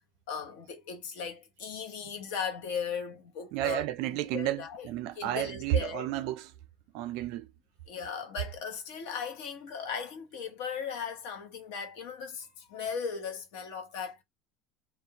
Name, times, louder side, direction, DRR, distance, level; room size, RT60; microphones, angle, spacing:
voice 1, 0.3-3.8 4.3-4.9 5.2-6.1 7.9-14.2, left 6 dB, 65° left, 0.8 m, -37 dB
voice 2, 3.5-6.5 6.9-7.5, right 13 dB, 55° right, 0.3 m, -32 dB
2.4 x 2.0 x 2.8 m
cardioid pair, 180°, 0 cm